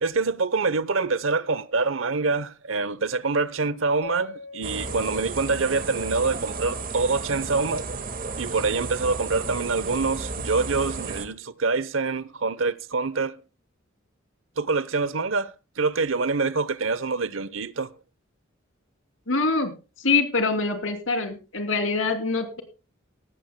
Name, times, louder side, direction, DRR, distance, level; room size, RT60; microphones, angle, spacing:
voice 1, 0.0-7.9 8.4-13.4 14.6-17.9, right 4 dB, 75° right, 0.9 m, -25 dB
Mallet percussion, 4.0-7.0, left 3 dB, 50° left, 6.0 m, -44 dB
sound 1, 4.6-11.3, right 4 dB, 45° right, 1.8 m, -33 dB
voice 2, 19.3-19.7 20.0-22.6, left 3 dB, 75° left, 3.1 m, -24 dB
18.0 x 15.5 x 2.2 m
head